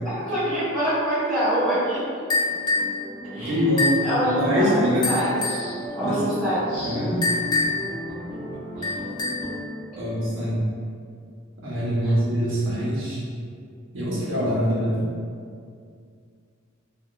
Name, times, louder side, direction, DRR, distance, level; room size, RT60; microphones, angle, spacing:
voice 1, 0.1-2.0 3.3-3.7 4.0-6.9 8.8-8.9 12.0-12.1, equal, 10° right, -16 dB, 1.4 m, -25 dB
sound 1, 2.3-3.0 3.8-4.1 5.0-5.7 7.2-7.9 8.8-9.5, left 3 dB, 20° left, 0.3 m, -25 dB
sound 2, 2.4-9.6, left 1 dB, 45° right, 1.1 m, -35 dB
voice 2, 3.3-3.9 4.2-5.1 6.0-6.2 6.8-7.2 9.9-10.6 11.6-13.2 13.9-15.1, equal, 70° right, -7 dB, 0.9 m, -24 dB
3.5 x 2.3 x 2.4 m, 2.2 s
head